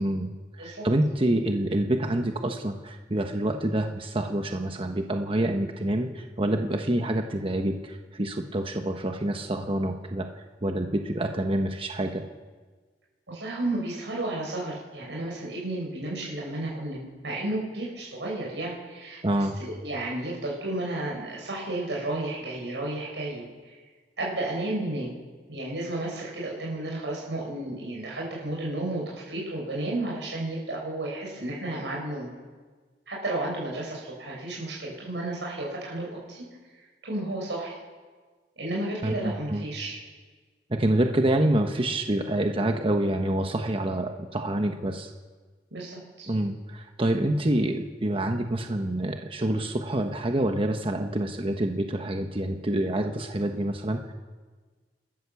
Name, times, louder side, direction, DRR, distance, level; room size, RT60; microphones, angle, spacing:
voice 1, 0.0-10.3 10.6-12.2 19.2-19.6 39.0-39.6 40.7-45.1 46.3-54.1, right 1 dB, 30° right, 4 dB, 1.2 m, -27 dB
voice 2, 13.3-23.8 24.2-25.1 25.5-32.3 33.1-36.4 36.7-37.7 38.6-40.0 45.7-46.3, right 2 dB, 85° right, -3 dB, 6.3 m, -32 dB
29.0 x 13.0 x 7.1 m, 1.4 s
head